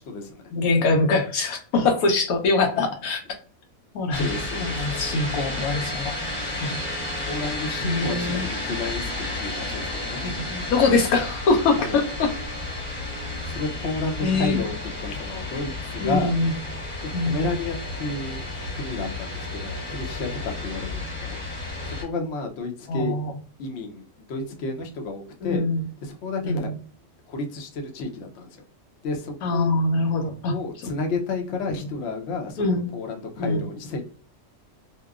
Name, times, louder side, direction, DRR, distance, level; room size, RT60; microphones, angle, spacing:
voice 1, 0.0-0.4 1.7-1.8 4.1-4.9 7.2-9.1 9.4-10.2 11.8-12.0 13.4-16.3 17.0-18.4 18.7-23.2 23.6-25.6 26.0-26.7 27.3-28.6 29.0-29.7 30.4-34.1, left 3 dB, 60° left, 3 dB, 0.8 m, -31 dB
voice 2, 0.5-3.2 3.9-4.3 4.6-6.2 6.6-6.8 7.8-8.5 10.2-12.3 14.2-14.6 16.0-16.5 17.1-17.4 22.9-23.3 25.4-25.8 26.4-26.7 29.4-30.5 32.6-32.9 33.4-33.6, left 3 dB, 85° left, 3 dB, 1.1 m, -23 dB
sound 1, 4.1-22.0, left 2 dB, 10° left, 1.0 m, -32 dB
2.8 x 2.1 x 2.3 m, 0.40 s
omnidirectional pair, 1.5 m